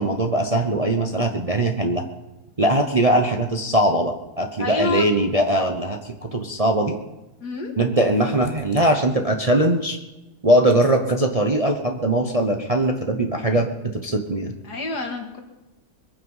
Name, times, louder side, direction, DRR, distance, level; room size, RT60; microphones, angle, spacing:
voice 1, 0.0-2.0 2.6-6.9 7.8-10.0 10.4-14.5, right 1 dB, 30° right, 4 dB, 0.8 m, -21 dB
voice 2, 4.6-5.0 7.4-7.7 14.6-15.4, left 4 dB, 70° left, 3 dB, 2.6 m, -28 dB
22.5 x 9.5 x 5.5 m, 1.0 s
omnidirectional pair, 1.8 m